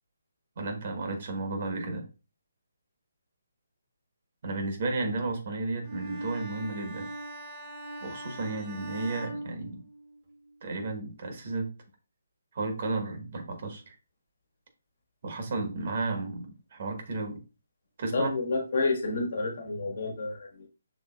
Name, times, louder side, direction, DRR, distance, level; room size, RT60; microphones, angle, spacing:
voice 1, 0.6-2.0 4.4-7.1 8.0-9.8 10.6-11.7 12.5-13.9 15.2-17.4 18.0-18.3, right 3 dB, 50° right, 4 dB, 1.2 m, -33 dB
Bowed string instrument, 5.8-10.3, right 1 dB, 30° right, 1.0 m, -41 dB
voice 2, 18.1-20.7, left 3 dB, 60° left, 3 dB, 1.3 m, -29 dB
6.2 x 3.3 x 2.3 m, 0.32 s
figure-of-eight pair, 150°, 0 cm